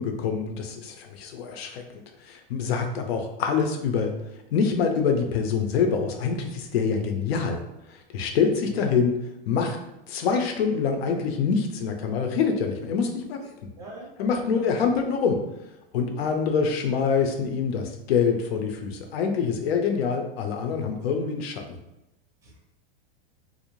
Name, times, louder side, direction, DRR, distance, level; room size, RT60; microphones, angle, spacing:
voice 1, 0.0-4.1 4.5-7.6 7.9-9.2 9.5-9.8 10.1-13.5 14.2-15.4 15.9-21.8, left 6 dB, 90° left, 5 dB, 0.6 m, -25 dB
voice 2, 13.8-14.1 14.5-14.6 16.1-16.3 22.4-22.6, right 3 dB, 10° right, -4 dB, 0.5 m, -42 dB
2.6 x 2.0 x 2.9 m, 0.93 s
supercardioid pair, 155°, 30 cm